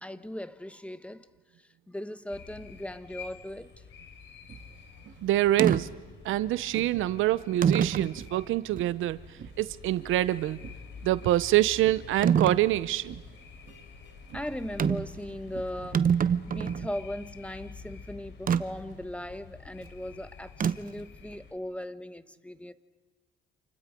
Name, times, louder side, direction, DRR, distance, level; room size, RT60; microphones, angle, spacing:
voice 1, 0.0-1.3 1.6-3.7 14.3-16.1 16.5-22.7, left 1 dB, 5° left, 1.2 m, -38 dB
sound 1, 2.3-21.5, left 6 dB, 70° left, 3.5 m, -48 dB
sound 2, 4.5-15.9, right 7 dB, 65° right, 1.9 m, -51 dB
voice 2, 5.2-5.9 6.2-10.6 11.0-13.2, right 15 dB, 85° right, 0.7 m, -26 dB
sound 3, 5.6-5.8 6.7-6.9 7.6-8.1 8.8-8.9 12.2-12.6 14.8-15.1 15.5-15.6 15.8-16.9 18.5-18.6 20.6-21.0, right 7 dB, 45° right, 0.9 m, -25 dB
29.0 x 28.5 x 5.2 m
cardioid pair, 90°, 20 cm